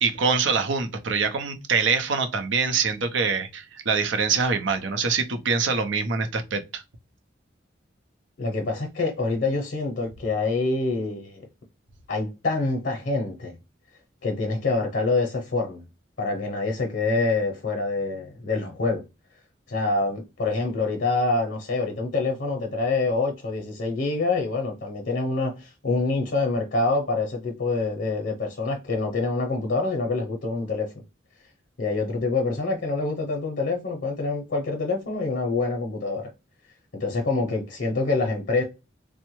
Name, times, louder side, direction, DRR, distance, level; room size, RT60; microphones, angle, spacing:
voice 1, 0.0-6.8, right 5 dB, 90° right, 0.6 m, -24 dB
voice 2, 8.4-11.4 12.1-13.6 14.2-15.8 16.2-19.0 19.7-30.9 31.8-36.3 36.9-38.6, left 3 dB, 65° left, 0.6 m, -26 dB
3.2 x 2.1 x 3.0 m
head